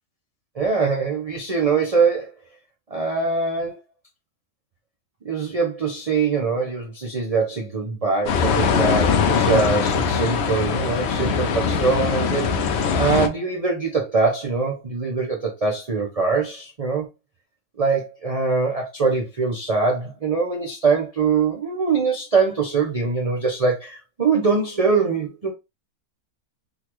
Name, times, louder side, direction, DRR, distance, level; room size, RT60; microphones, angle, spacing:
voice 1, 0.6-2.3 2.9-3.8 5.2-12.5 13.0-17.1 17.8-25.5, right 4 dB, 55° right, 0.4 m, -23 dB
sound 1, 8.3-13.3, left 6 dB, 70° left, 0.6 m, -21 dB
3.7 x 2.3 x 2.9 m
omnidirectional pair, 1.6 m